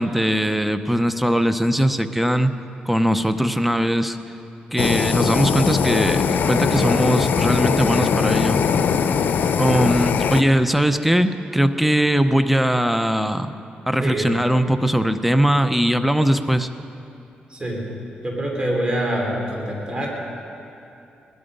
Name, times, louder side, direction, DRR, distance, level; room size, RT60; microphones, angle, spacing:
voice 1, 0.0-2.5 2.9-4.2 4.7-8.6 9.6-13.5 13.9-16.7, equal, 5° right, 10 dB, 0.7 m, -20 dB
Fire, 4.8-10.4, left 6 dB, 75° left, 0.6 m, -20 dB
voice 2, 14.0-14.3 17.5-17.9 18.2-20.1, right 1 dB, 30° right, -2 dB, 4.0 m, -25 dB
19.5 x 12.5 x 5.4 m, 2.7 s
cardioid pair, 85°, 3 cm